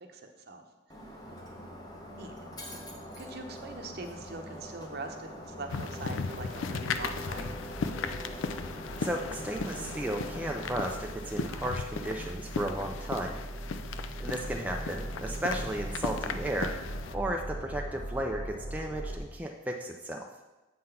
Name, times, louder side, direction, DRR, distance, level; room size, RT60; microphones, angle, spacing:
voice 1, 0.1-0.6 2.1-2.3 2.7-2.8 3.2-7.6, right 3 dB, 55° right, 5 dB, 0.8 m, -42 dB
Shatter, 0.9-10.9, equal, 20° left, 0.9 m, -47 dB
sound 1, 1.2-19.2, right 1 dB, 40° left, 1.2 m, -41 dB
sound 2, 5.7-17.1, left 5 dB, 75° left, 0.4 m, -37 dB
voice 2, 9.0-13.3 14.2-16.7 17.1-20.3, right 1 dB, 10° right, 1 dB, 0.4 m, -34 dB
7.6 x 3.9 x 5.6 m, 1.1 s
head